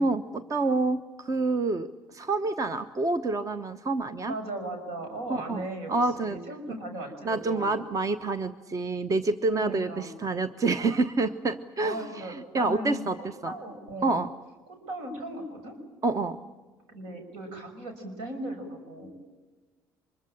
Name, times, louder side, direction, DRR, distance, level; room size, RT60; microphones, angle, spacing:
voice 1, 0.0-4.3 5.3-5.6 5.9-6.4 6.7-6.8 7.2-13.2 13.4-13.5 14.0-14.3 16.0-16.4, right 3 dB, 35° right, 11 dB, 1.1 m, -28 dB
voice 2, 4.3-7.8 9.6-10.1 11.8-14.2 14.7-15.7 16.9-19.1, right 1 dB, 80° right, 6 dB, 5.9 m, -38 dB
25.0 x 22.5 x 8.8 m, 1.3 s
hypercardioid pair, 65°, 10 cm